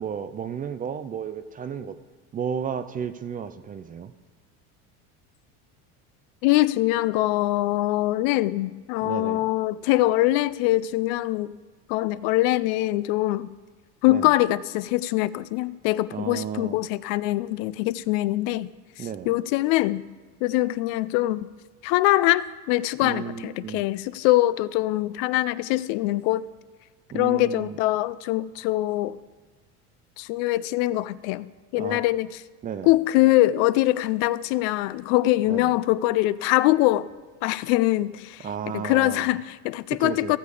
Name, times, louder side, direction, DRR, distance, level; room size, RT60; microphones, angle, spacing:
voice 1, 0.0-2.0 2.3-4.1 9.0-9.4 14.1-14.3 16.1-16.8 19.0-19.3 23.0-23.8 27.1-27.8 31.8-32.0 32.6-32.9 35.5-35.7 38.4-39.3 40.0-40.4, right 7 dB, 25° right, 0.4 m, -33 dB
voice 2, 6.4-11.6 11.9-13.5 14.0-18.7 19.0-20.0 20.4-21.5 21.8-26.4 27.1-29.2 30.2-32.4 32.8-37.1 37.4-38.5 38.7-40.4, left 17 dB, 70° left, 0.5 m, -23 dB
15.0 x 6.8 x 4.9 m
supercardioid pair, 120°, 37 cm